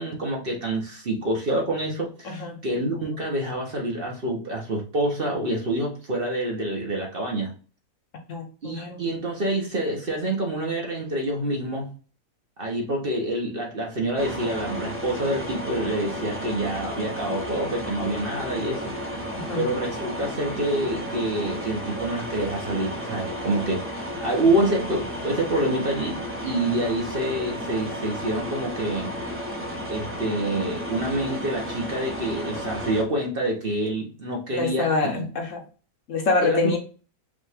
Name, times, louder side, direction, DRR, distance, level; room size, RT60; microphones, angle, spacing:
voice 1, 0.0-7.5 8.6-11.9 12.6-18.9 19.6-29.1 29.9-35.2 36.4-36.8, right 1 dB, 40° right, 0 dB, 1.1 m, -27 dB
voice 2, 2.2-2.6 8.3-9.0 19.3-19.7 34.5-35.6 36.1-36.8, left 3 dB, 60° left, 3 dB, 1.1 m, -26 dB
sound 1, 14.2-33.0, equal, 15° right, 0.6 m, -33 dB
5.3 x 2.5 x 3.4 m, 0.37 s
omnidirectional pair, 1.6 m